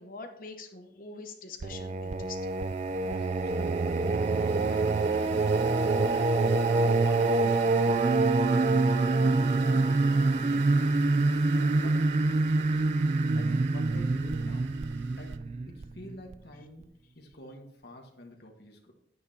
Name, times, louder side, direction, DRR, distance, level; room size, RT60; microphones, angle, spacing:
voice 1, 0.0-2.5 8.1-8.2, left 4 dB, 50° left, 4 dB, 0.9 m, -44 dB
Singing, 1.6-16.3, right 3 dB, 40° right, 0.3 m, -26 dB
sound 1, 2.0-15.4, right 5 dB, 90° right, 0.7 m, -46 dB
voice 2, 2.9-7.9 8.3-11.0 11.5-12.8 13.3-14.7 15.1-16.9 17.1-18.9, left 1 dB, 65° left, 1 dB, 1.4 m, -48 dB
10.5 x 9.5 x 2.8 m, 0.73 s
head